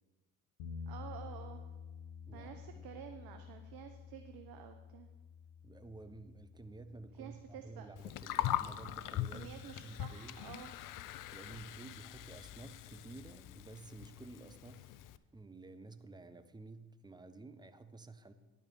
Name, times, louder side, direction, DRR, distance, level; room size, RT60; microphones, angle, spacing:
sound 1, 0.6-10.6, left 6 dB, 85° left, 1.1 m, -51 dB
voice 1, 0.9-1.6 2.3-5.1 7.1-7.9 9.3-10.8, right 9 dB, 55° right, 6 dB, 0.9 m, -50 dB
voice 2, 2.3-2.9 5.6-9.5 9.8-10.4 11.3-15.0 15.3-18.3, right 3 dB, 10° right, 10 dB, 0.8 m, -52 dB
Gurgling, 8.0-15.2, left 13 dB, 50° left, 0.5 m, -41 dB
10.5 x 5.5 x 6.9 m, 1.2 s
hypercardioid pair, 60°, 42 cm